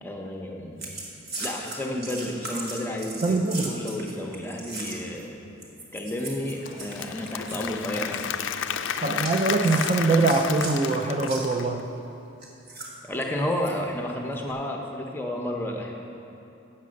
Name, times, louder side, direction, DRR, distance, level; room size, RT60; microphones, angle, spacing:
voice 1, 0.0-1.0 1.4-5.3 5.9-8.3 13.0-15.9, left 1 dB, 10° left, 1 dB, 0.7 m, -31 dB
sound 1, 0.8-5.2 5.6-7.7 7.9-8.3 9.2-10.8 11.2-11.5 12.4-13.7 14.3-14.5, right 2 dB, 50° right, 1.4 m, -38 dB
voice 2, 3.2-3.8 9.0-11.9, right 3 dB, 30° right, 4 dB, 0.3 m, -23 dB
Applause / Crowd, 6.4-11.8, left 8 dB, 60° left, 0.3 m, -32 dB
8.5 x 6.9 x 6.3 m, 2.8 s
head